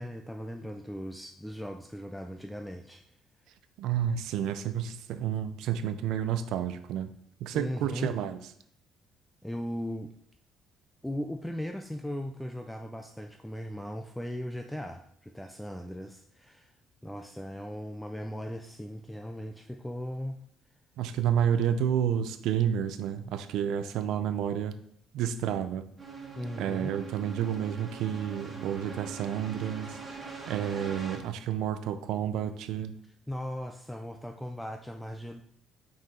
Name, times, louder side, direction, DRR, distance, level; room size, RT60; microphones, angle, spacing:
voice 1, 0.0-3.0 7.5-8.1 9.4-10.1 11.0-16.7 17.0-20.4 26.4-26.9 33.3-35.4, equal, 5° left, 4 dB, 0.3 m, -38 dB
voice 2, 3.8-7.1 7.4-8.4 21.0-24.8 25.1-25.8 26.6-30.0 30.5-32.9, right 9 dB, 75° right, 11 dB, 0.5 m, -30 dB
sound 1, 26.0-31.2, right 5 dB, 20° right, 1.3 m, -42 dB
5.6 x 5.3 x 3.7 m, 0.67 s
cardioid pair, 155°, 0 cm